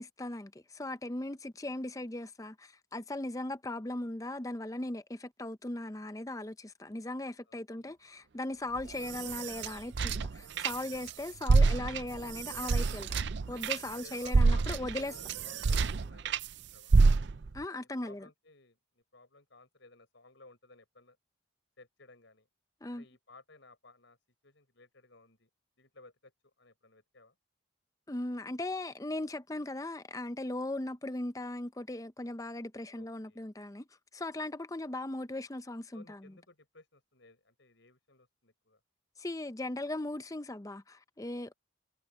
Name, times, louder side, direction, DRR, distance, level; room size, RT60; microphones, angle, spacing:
voice 1, 0.0-13.2 13.5-15.1 17.5-18.3 22.8-23.0 28.1-33.9 34.1-36.3 39.2-41.5, left 1 dB, 15° left, 0.6 m, -38 dB
voice 2, 7.5-7.9 10.8-11.0 13.9-16.9 18.0-21.2 21.8-22.5 22.9-24.2 24.4-25.5 25.8-27.3 32.9-33.4 35.9-38.8, left 3 dB, 65° left, 6.5 m, -58 dB
sound 1, 8.8-11.1 11.4-16.5 16.9-17.6, right 4 dB, 55° right, 0.5 m, -28 dB
head